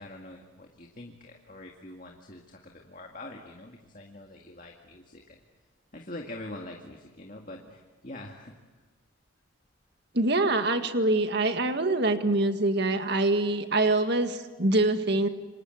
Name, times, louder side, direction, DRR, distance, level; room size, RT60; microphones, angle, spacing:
voice 1, 0.0-5.4 5.9-8.6, left 1 dB, 40° left, 1 dB, 2.0 m, -44 dB
voice 2, 10.1-15.3, right 2 dB, 55° right, 7 dB, 1.9 m, -25 dB
29.0 x 25.5 x 7.9 m, 1.3 s
head